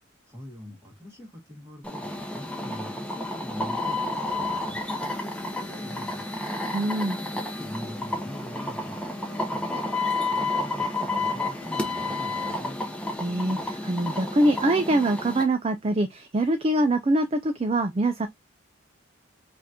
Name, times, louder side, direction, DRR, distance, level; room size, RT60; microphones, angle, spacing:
voice 1, 0.3-6.2 7.6-12.8, left 1 dB, 15° right, 1.8 m, -43 dB
sound 1, 1.8-15.4, left 2 dB, 5° left, 0.9 m, -31 dB
voice 2, 6.7-7.2 13.2-18.3, right 1 dB, 30° right, 0.4 m, -24 dB
5.5 x 2.5 x 2.8 m
head